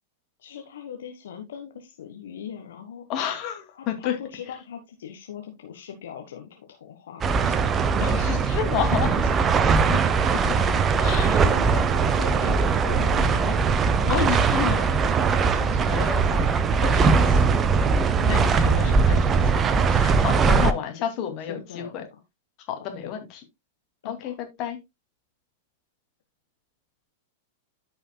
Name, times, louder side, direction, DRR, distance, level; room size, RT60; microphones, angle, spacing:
voice 1, 0.4-3.1 3.7-7.7 10.2-10.4 11.0-13.6 16.1-16.4 18.4-19.0 20.5-22.1 22.8-23.1 24.0-24.3, left 8 dB, 65° left, 1.3 m, -41 dB
voice 2, 3.1-4.1 8.0-9.3 9.9-10.0 10.3-10.6 11.0-11.7 14.0-14.9 15.4-16.6 16.8-19.4 19.9-21.8 22.7-23.3 24.0-24.8, left 9 dB, 40° left, 2.4 m, -31 dB
sound 1, 7.2-20.7, right 5 dB, 25° right, 0.8 m, -21 dB
14.0 x 5.6 x 2.3 m
figure-of-eight pair, 95°, 0 cm